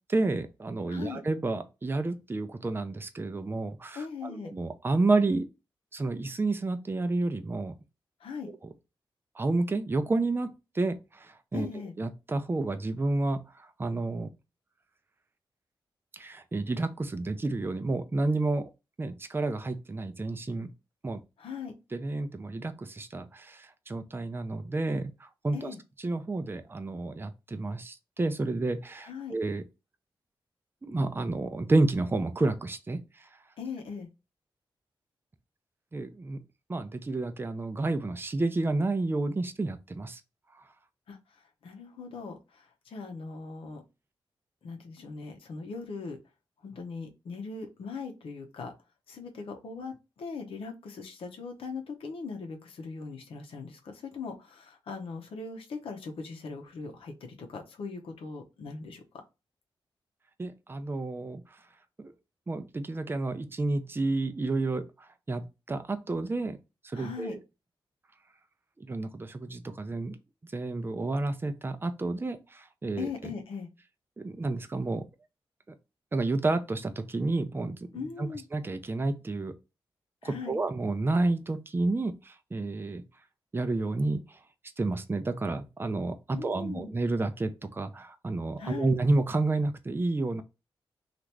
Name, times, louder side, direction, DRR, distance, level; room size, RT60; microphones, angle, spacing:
voice 1, 0.1-5.5 5.9-7.7 9.4-11.7 12.0-14.3 16.1-18.7 19.0-20.7 21.0-21.2 21.9-25.7 26.0-29.6 30.8-33.3 35.9-36.4 36.7-40.2 60.4-61.4 62.0-62.1 62.5-66.6 66.8-67.4 68.8-70.2 70.5-73.1 74.2-75.1 76.1-79.5 80.2-83.0 83.5-84.4 84.8-90.4, right 2 dB, 25° right, 0.5 m, -30 dB
voice 2, 0.9-1.2 3.9-4.5 8.2-8.5 11.5-11.9 21.4-21.7 25.5-25.8 29.0-29.3 33.6-34.1 41.1-41.2 41.6-43.8 44.6-46.2 46.6-48.7 49.1-59.0 66.9-67.4 73.0-73.7 77.9-78.4 80.2-80.6 86.3-87.0 88.6-88.9, left 5 dB, 85° left, 0.7 m, -40 dB
2.9 x 2.5 x 3.2 m
cardioid pair, 60°, 9 cm